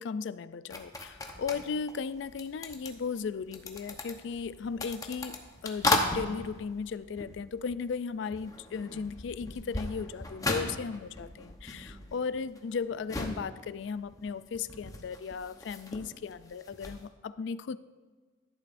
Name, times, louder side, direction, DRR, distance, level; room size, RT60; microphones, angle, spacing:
voice 1, 0.0-5.4 5.6-17.8, left 5 dB, 70° left, 15 dB, 0.4 m, -36 dB
sound 1, 0.7-8.0 8.3-17.0, left 2 dB, 20° left, 0.9 m, -37 dB
12.0 x 10.5 x 2.6 m, 1.4 s
head